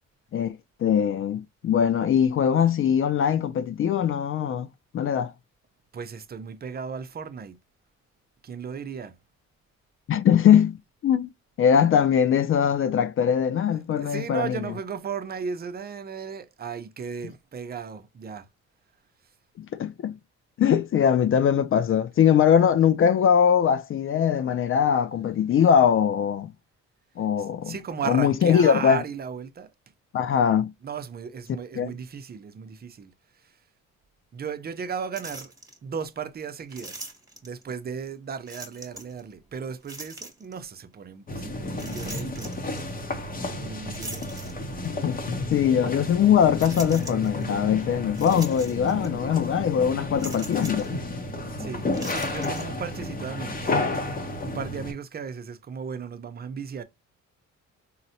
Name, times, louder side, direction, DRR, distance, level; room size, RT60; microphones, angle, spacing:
voice 1, 0.3-4.7 4.9-5.3 10.1-10.8 11.0-11.3 11.6-14.6 19.6-20.2 20.6-26.5 27.2-27.7 28.1-29.0 30.1-30.7 31.8-31.9 44.8-50.9, left 8 dB, 45° left, 0.4 m, -21 dB
voice 2, 5.9-7.6 8.4-9.2 14.0-18.5 27.4-29.7 30.8-33.6 34.3-35.5 35.8-37.1 37.4-42.5 43.5-44.4 51.6-53.8 54.4-56.8, right 6 dB, 30° right, 0.6 m, -35 dB
sound 1, 35.1-35.8 36.7-37.6 38.5-39.2 39.8-40.6 41.7-42.8 43.9-45.0 45.5-45.6 46.6-47.4 48.1-49.1 49.3-49.5 50.2-50.9 51.9-52.6, right 2 dB, 10° right, 1.1 m, -41 dB
sound 2, 41.3-54.9, left 2 dB, 30° left, 0.8 m, -32 dB
3.9 x 2.1 x 2.7 m
cardioid pair, 90°, 30 cm